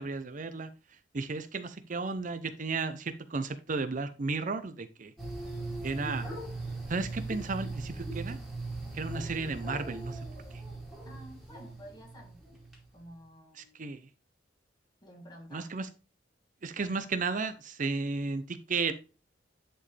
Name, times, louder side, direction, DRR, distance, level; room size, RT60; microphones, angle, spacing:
voice 1, 0.0-5.1 5.8-6.3 6.9-8.4 8.9-10.3 10.5-10.6 13.5-14.1 15.5-15.9 16.6-18.9, right 4 dB, 45° right, 10 dB, 0.6 m, -34 dB
sound 1, 5.2-12.8, right 2 dB, ahead, 2.7 m, -39 dB
voice 2, 11.1-12.4 12.9-13.8 15.0-15.7, equal, 25° left, 0 dB, 2.5 m, -51 dB
10.0 x 4.5 x 3.3 m, 0.33 s
head